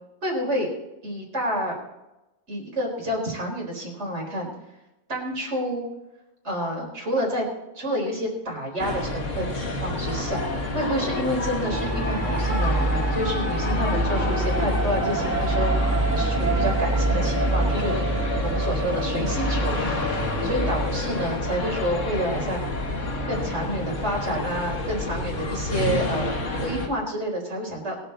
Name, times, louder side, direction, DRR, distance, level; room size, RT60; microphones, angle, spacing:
voice 1, 0.2-0.7 1.0-1.7 2.5-4.5 5.1-5.9 6.4-7.4 7.7-17.9 18.4-20.0 20.4-26.3 26.6-28.0, equal, 65° right, -1 dB, 4.5 m, -29 dB
sound 1, 8.8-26.9, left 2 dB, 90° left, 2.0 m, -29 dB
sound 2, 11.7-20.9, right 2 dB, 15° right, 1.3 m, -25 dB
22.0 x 8.0 x 4.1 m, 1.0 s
omnidirectional pair, 1.3 m